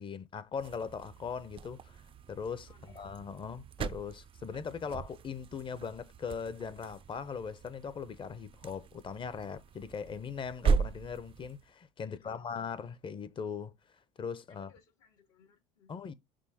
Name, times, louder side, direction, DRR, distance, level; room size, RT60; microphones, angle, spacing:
voice 1, 0.0-2.0 2.3-13.7 14.2-14.7 15.9-16.1, left 6 dB, 30° left, 0.7 m, -40 dB
sound 1, 0.5-11.7, right 5 dB, 35° right, 0.3 m, -38 dB
voice 2, 2.7-3.3 12.0-12.5 14.5-15.9, left 6 dB, 80° left, 2.9 m, -64 dB
6.1 x 2.1 x 4.2 m
hypercardioid pair, 75°, 16 cm